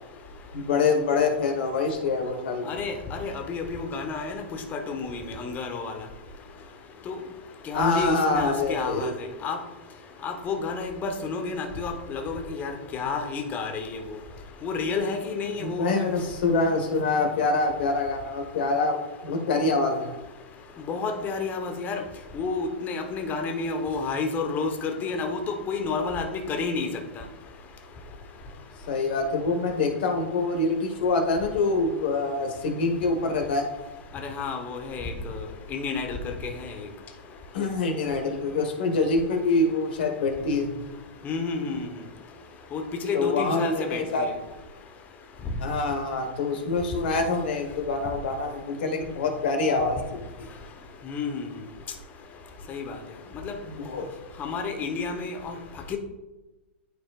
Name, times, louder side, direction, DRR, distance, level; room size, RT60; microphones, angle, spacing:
voice 1, 0.5-2.8 7.7-9.1 15.6-19.0 19.2-20.1 28.9-33.6 37.5-40.7 43.1-44.3 45.6-50.5 53.6-54.1, left 3 dB, 65° left, 5 dB, 1.4 m, -25 dB
voice 2, 2.7-5.9 7.1-7.2 7.7-9.1 9.4-9.6 10.2-14.0 14.6-16.0 20.9-22.0 22.3-25.4 25.7-26.9 34.2-35.4 35.7-36.3 41.2-41.9 42.7-44.3 51.1-51.4 52.7-52.9 53.4-53.5 54.4-55.5 55.9-56.0, left 4 dB, 30° left, 4 dB, 1.1 m, -30 dB
12.0 x 4.4 x 2.5 m, 1.1 s
hypercardioid pair, 105°, 6 cm